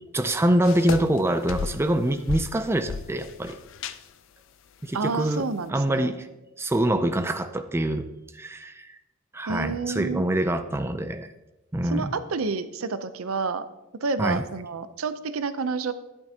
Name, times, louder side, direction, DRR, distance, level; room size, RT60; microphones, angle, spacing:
voice 1, 0.1-3.6 4.8-6.3 6.6-8.1 8.3-9.0 9.3-11.3 11.7-12.1 14.2-14.4, right 1 dB, 10° right, 9 dB, 0.4 m, -25 dB
sound 1, 0.6-1.2 1.5-2.0 2.3-4.0, left 5 dB, 65° left, 0.5 m, -33 dB
voice 2, 4.9-6.1 9.5-10.2 11.9-13.6 14.0-15.9, right 4 dB, 80° right, 12 dB, 0.6 m, -29 dB
12.5 x 10.5 x 2.8 m, 0.98 s
head